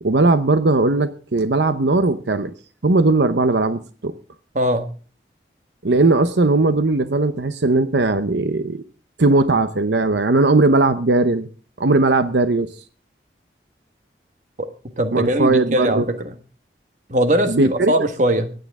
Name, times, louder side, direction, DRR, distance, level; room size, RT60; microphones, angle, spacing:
voice 1, 0.0-2.5 2.8-4.1 5.8-8.8 9.2-11.5 11.8-12.7 15.1-16.1 17.5-17.9, right 2 dB, 75° right, 10 dB, 0.8 m, -18 dB
voice 2, 4.5-4.9 15.0-16.3 17.1-18.5, right 1 dB, 45° right, 7 dB, 1.5 m, -20 dB
24.0 x 9.5 x 3.6 m, 0.39 s
head